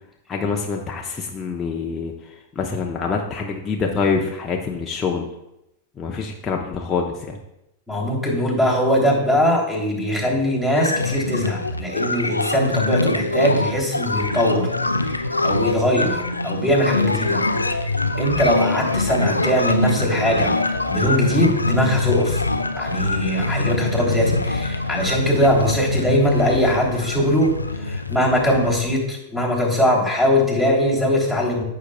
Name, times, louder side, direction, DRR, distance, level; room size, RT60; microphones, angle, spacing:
voice 1, 0.3-2.1 2.6-5.3 6.0-7.4, left 5 dB, 20° left, 0 dB, 0.9 m, -25 dB
voice 2, 7.9-14.7 15.0-16.2 16.4-17.4 18.2-22.4 22.8-27.5 27.8-31.6, equal, 5° right, -2 dB, 3.2 m, -21 dB
sound 1, 10.7-28.8, left 2 dB, 85° left, 0.5 m, -24 dB
14.0 x 6.8 x 2.3 m, 0.87 s
figure-of-eight pair, 95°, 0 cm